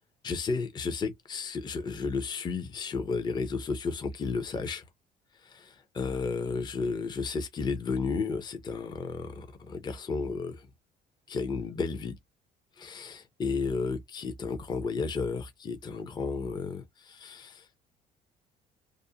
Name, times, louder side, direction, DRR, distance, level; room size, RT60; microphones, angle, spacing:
voice 1, 0.2-4.8 5.4-10.7 11.3-12.1 12.8-17.7, left 4 dB, 25° left, 0.5 m, -33 dB
2.4 x 2.0 x 2.7 m
cardioid pair, 110°, 17 cm